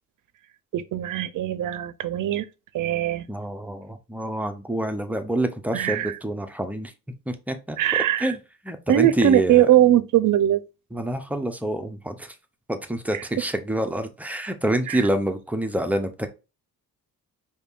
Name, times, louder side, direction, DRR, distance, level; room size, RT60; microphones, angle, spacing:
voice 1, 0.7-2.5 2.7-3.3 5.7-6.2 7.8-8.3 8.9-10.6 13.1-13.3 14.9-15.1, right 12 dB, 65° right, 0.5 m, -21 dB
voice 2, 3.3-6.9 7.3-7.8 8.2-8.4 8.6-9.7 10.9-12.3 12.7-16.3, right 1 dB, 5° right, 0.3 m, -27 dB
5.1 x 2.7 x 2.3 m
wide cardioid pair, 175°, 35 cm